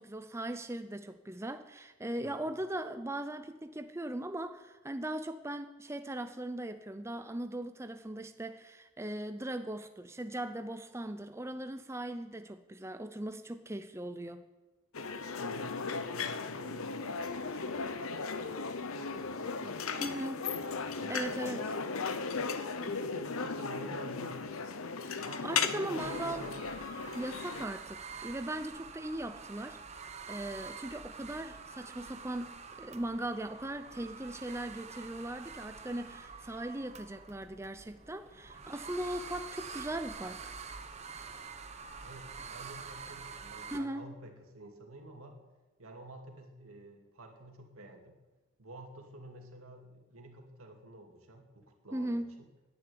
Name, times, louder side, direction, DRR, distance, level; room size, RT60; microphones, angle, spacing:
voice 1, 0.0-14.4 20.0-20.4 21.1-21.6 25.0-26.5 27.1-29.8 30.3-40.5 43.7-44.1 51.9-52.4, right 1 dB, 15° right, 9 dB, 0.5 m, -39 dB
voice 2, 2.2-2.6 15.3-17.9 18.3-18.7 19.0-20.1 20.5-21.2 21.4-21.6 22.8-24.6 25.2-26.6 42.0-45.4 45.8-48.2 48.6-52.5, right 1 dB, 90° right, 3 dB, 2.5 m, -50 dB
sound 1, 14.9-27.6, left 5 dB, 85° left, 0.9 m, -36 dB
sound 2, 26.0-43.8, right 5 dB, 30° right, 0.9 m, -47 dB
10.5 x 9.9 x 9.7 m, 1.1 s
head